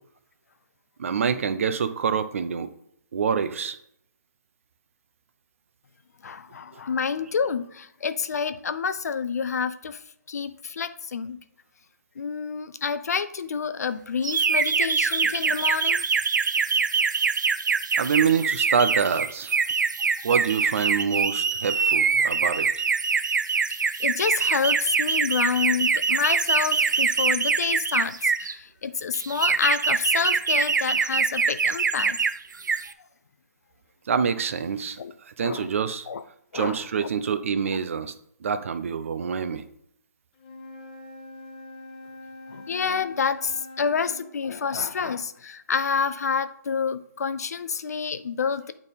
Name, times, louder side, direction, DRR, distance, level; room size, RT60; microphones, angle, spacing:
voice 1, 1.0-2.7 3.1-3.8 18.0-19.6 20.2-22.7 34.1-35.0 35.3-36.1 36.5-38.1 38.4-39.6, right 6 dB, 45° right, 11 dB, 0.6 m, -26 dB
voice 2, 6.2-10.0 10.3-11.4 12.2-16.1 23.7-32.2 35.0-35.1 35.4-35.7 36.1-36.2 36.5-37.1 42.5-48.7, left 6 dB, 60° left, 13 dB, 0.6 m, -28 dB
sound 1, 14.2-28.5 29.1-32.3 32.6-32.9, right 5 dB, 85° right, 0.5 m, -24 dB
Wind instrument woodwind instrument, 40.3-44.3, left 2 dB, 30° left, 0.8 m, -43 dB
8.8 x 3.6 x 4.1 m, 0.73 s
hypercardioid pair, 165°, 10 cm